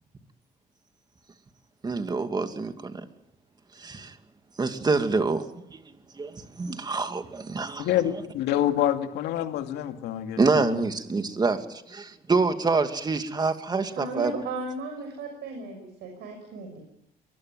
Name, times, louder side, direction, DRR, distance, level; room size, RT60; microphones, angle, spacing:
voice 1, 1.8-2.9 3.8-4.1 4.6-5.8 6.2-8.2 10.4-14.4, right 4 dB, 25° right, 2.5 m, -27 dB
voice 2, 7.8-10.8, left 11 dB, 85° left, 2.5 m, -27 dB
voice 3, 13.9-16.8, right 3 dB, 80° right, 6.4 m, -35 dB
22.5 x 21.0 x 9.2 m
cardioid pair, 110°, 17 cm